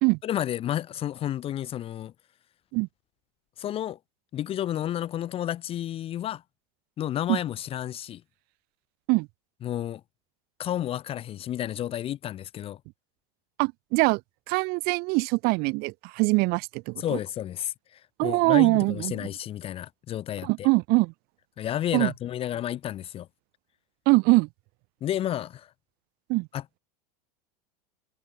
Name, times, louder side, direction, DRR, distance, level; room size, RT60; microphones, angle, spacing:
voice 1, 0.2-2.1 3.6-4.0 4.3-6.4 7.0-8.2 9.6-10.0 10.6-12.8 17.0-20.7 21.6-23.3 25.0-25.7 26.5-26.8, left 11 dB, 30° left, 0.4 m, -31 dB
voice 2, 13.6-14.2 14.5-17.2 18.2-19.1 20.4-21.1 21.9-22.1 24.1-24.5 26.3-26.5, right 27 dB, 50° right, 0.5 m, -23 dB
supercardioid pair, 115°, 20 cm